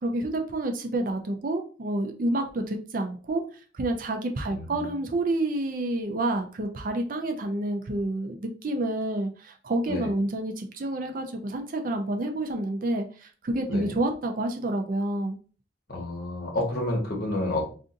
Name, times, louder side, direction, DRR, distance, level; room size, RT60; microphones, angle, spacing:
voice 1, 0.0-3.4 3.7-15.4, right 1 dB, 45° right, 4 dB, 0.4 m, -29 dB
voice 2, 4.5-4.9 9.9-10.1 13.7-13.9 15.9-17.7, left 1 dB, 50° left, 0 dB, 1.1 m, -30 dB
2.5 x 2.5 x 3.8 m, 0.38 s
head